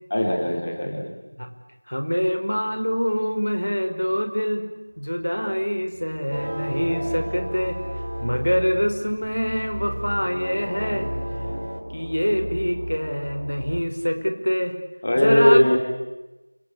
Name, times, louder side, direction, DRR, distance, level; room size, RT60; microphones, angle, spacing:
voice 1, 0.1-1.1 15.0-15.8, left 1 dB, 20° left, 1 dB, 3.4 m, -19 dB
voice 2, 1.9-4.6 5.0-7.8 8.2-11.1 11.9-14.7 15.2-15.6, equal, 90° left, 7 dB, 5.5 m, -25 dB
sound 1, 5.0-13.8, equal, 85° right, 3.9 m, -35 dB
sound 2, 6.3-11.8, equal, 60° right, 4.0 m, -34 dB
28.0 x 24.0 x 8.7 m, 1.0 s
figure-of-eight pair, 180°, 0 cm